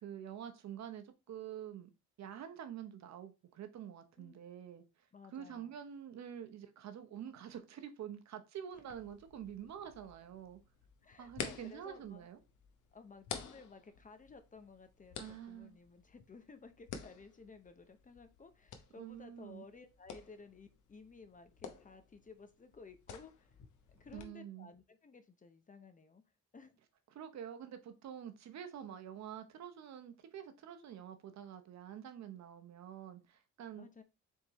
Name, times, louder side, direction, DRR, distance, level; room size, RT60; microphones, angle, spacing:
voice 1, 0.0-1.9 2.2-4.8 5.3-10.6 11.2-12.4 15.2-15.8 19.0-19.7 24.1-24.7 27.1-33.9, right 9 dB, 65° right, 0.8 m, -47 dB
voice 2, 5.1-5.8 11.0-12.3 12.9-23.6 23.9-26.2 26.5-26.7 33.8-34.0, left 4 dB, 25° left, 0.7 m, -56 dB
sound 1, 8.7-24.2, left 7 dB, 80° left, 0.9 m, -51 dB
4.3 x 3.7 x 3.0 m
cardioid pair, 90°, 30 cm